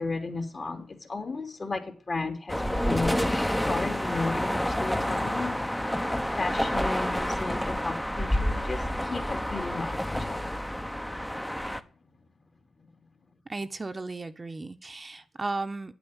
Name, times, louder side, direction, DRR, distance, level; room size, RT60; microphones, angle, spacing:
voice 1, 0.0-3.3 3.6-5.8 6.0-10.7 12.8-13.1, left 3 dB, 45° left, 3.1 m, -35 dB
sound 1, 2.5-11.8, equal, 5° left, 1.1 m, -29 dB
voice 2, 13.5-15.9, right 3 dB, 35° right, 1.2 m, -35 dB
9.2 x 8.3 x 8.3 m
supercardioid pair, 40°, 0 cm